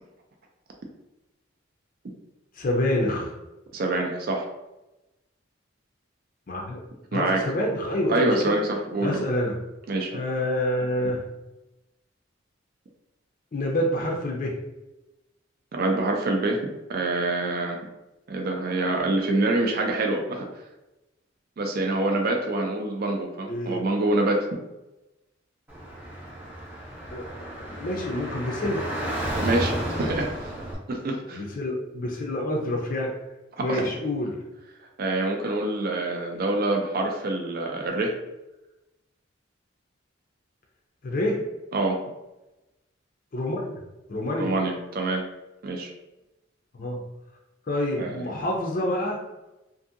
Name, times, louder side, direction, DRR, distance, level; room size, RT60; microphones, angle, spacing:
voice 1, 2.5-3.3 6.5-6.8 7.1-8.5 9.0-9.6 10.1-11.2 13.5-14.6 23.5-23.8 27.1-28.8 31.3-33.1 33.6-34.4 41.0-41.4 43.3-43.6 44.1-44.5 46.7-47.0 47.7-49.2, left 1 dB, 45° left, -1 dB, 0.5 m, -27 dB
voice 2, 3.7-4.5 7.1-7.5 8.1-9.2 9.9-10.1 15.7-17.8 18.3-20.5 21.6-24.5 29.3-30.6 30.9-31.4 33.6-33.9 35.0-38.2 41.7-42.0 44.4-45.2 45.6-45.9 48.0-48.2, right 2 dB, 50° right, 2 dB, 0.4 m, -26 dB
Car / Traffic noise roadway noise, 25.7-30.7, right 1 dB, 10° right, 0.6 m, -32 dB
2.7 x 2.6 x 2.5 m, 0.99 s
head